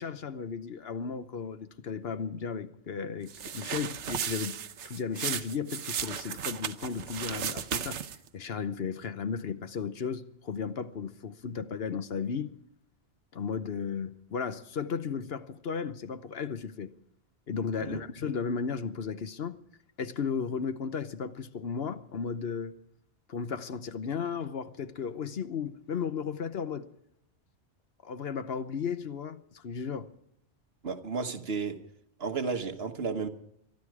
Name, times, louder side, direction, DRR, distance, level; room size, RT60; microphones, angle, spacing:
voice 1, 0.0-4.6 4.8-8.0 8.3-12.5 13.3-16.9 17.5-19.6 20.0-22.7 23.3-26.9 28.0-30.1, left 6 dB, 65° left, 1.1 m, -35 dB
sound 1, 3.3-8.3, right 8 dB, 90° right, 1.1 m, -35 dB
voice 2, 30.8-31.8 32.2-33.3, right 5 dB, 60° right, 1.5 m, -33 dB
23.5 x 12.0 x 4.8 m
omnidirectional pair, 1.2 m